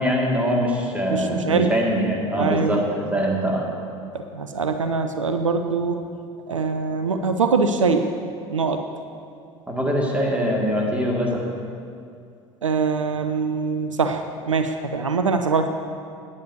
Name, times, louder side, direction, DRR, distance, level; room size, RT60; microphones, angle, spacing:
voice 1, 0.0-3.6 9.7-11.5, equal, 10° right, -2 dB, 2.2 m, -23 dB
voice 2, 1.1-1.7 2.4-2.8 4.1-6.0 6.5-8.1 8.5-8.8 12.6-15.7, right 4 dB, 85° right, 7 dB, 0.5 m, -23 dB
16.5 x 9.6 x 2.8 m, 2.4 s
figure-of-eight pair, 65°, 16 cm